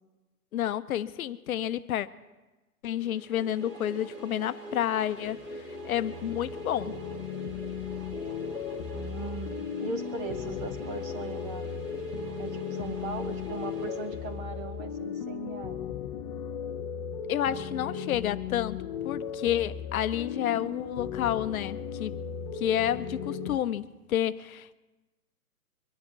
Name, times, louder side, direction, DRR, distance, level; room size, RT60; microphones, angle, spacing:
voice 1, 0.5-2.1 2.8-6.9 17.3-18.8 19.0-22.1 22.5-24.7, left 11 dB, 60° left, 0.7 m, -30 dB
sound 1, 3.0-14.8, right 1 dB, 85° right, 4.6 m, -42 dB
sound 2, 5.2-23.6, left 7 dB, 25° left, 0.6 m, -36 dB
voice 2, 8.9-11.7 12.4-15.9, right 4 dB, 15° right, 0.6 m, -39 dB
23.5 x 10.5 x 4.6 m
hypercardioid pair, 140°, 47 cm